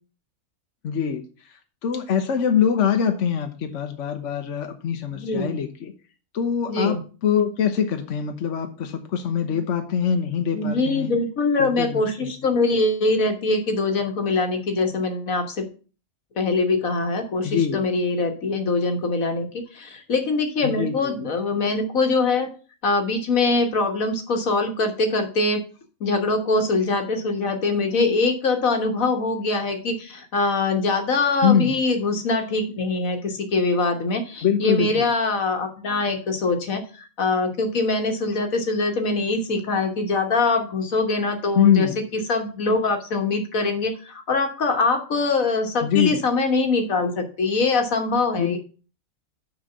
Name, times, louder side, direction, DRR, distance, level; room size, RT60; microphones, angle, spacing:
voice 1, 0.8-1.2 1.8-5.9 6.3-11.1 11.6-12.3 17.4-17.8 20.6-21.1 31.4-31.7 34.4-35.1 41.5-42.0 45.8-46.2 48.4-48.6, left 8 dB, 65° left, 5 dB, 1.2 m, -23 dB
voice 2, 5.1-5.5 6.7-7.0 9.5-9.6 10.5-15.7 16.4-22.5 22.8-25.6 26.0-48.6, left 3 dB, 85° left, 5 dB, 1.8 m, -23 dB
6.2 x 5.6 x 6.7 m, 0.37 s
omnidirectional pair, 1.4 m